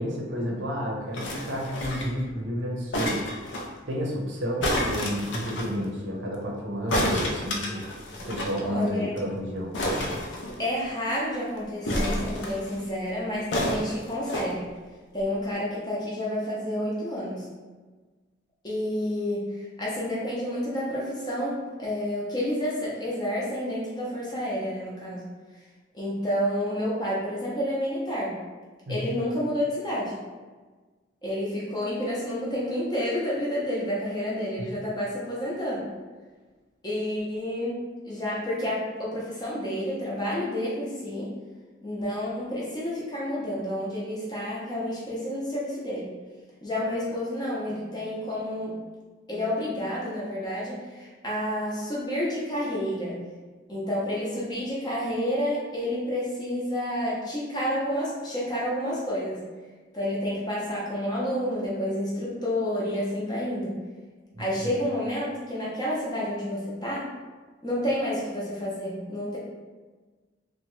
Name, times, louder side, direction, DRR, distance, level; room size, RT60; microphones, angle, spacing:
voice 1, 0.0-3.2 3.9-7.8 8.3-9.7 28.9-29.0 34.6-34.7 64.3-64.7, equal, 75° right, -2 dB, 0.6 m, -31 dB
sound 1, 1.1-2.2 2.9-3.7 4.6-5.7 6.9-8.6 8.9-9.0 9.2-9.3 9.7-10.9 11.9-12.8 13.5-14.5 15.2-15.3, left 1 dB, 75° left, 0.4 m, -29 dB
voice 2, 8.6-9.1 10.6-14.7 15.1-17.4 18.6-25.3 25.9-28.4 28.9-30.1 31.2-35.9 36.8-37.8 38.0-41.3 41.8-46.1 46.6-48.8 49.3-53.2 53.7-59.4 59.9-63.8 64.4-67.1 67.6-69.4, equal, 20° left, -7 dB, 0.6 m, -29 dB
2.8 x 2.1 x 3.0 m, 1.3 s
head